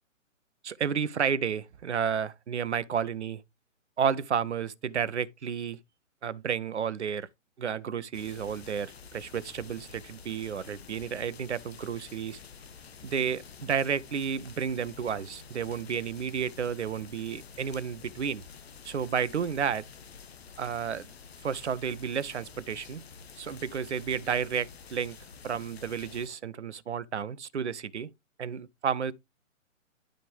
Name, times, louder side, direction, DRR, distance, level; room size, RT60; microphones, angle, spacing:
voice 1, 0.6-3.4 4.0-5.8 6.2-7.3 7.6-12.4 13.0-18.4 18.8-19.9 20.6-21.1 21.4-23.0 23.4-25.2 25.4-28.1 28.4-29.1, right 7 dB, 60° right, 0.8 m, -31 dB
sound 1, 8.1-26.3, left 6 dB, 50° left, 1.2 m, -49 dB
11.0 x 5.0 x 3.4 m
figure-of-eight pair, 130°, 40 cm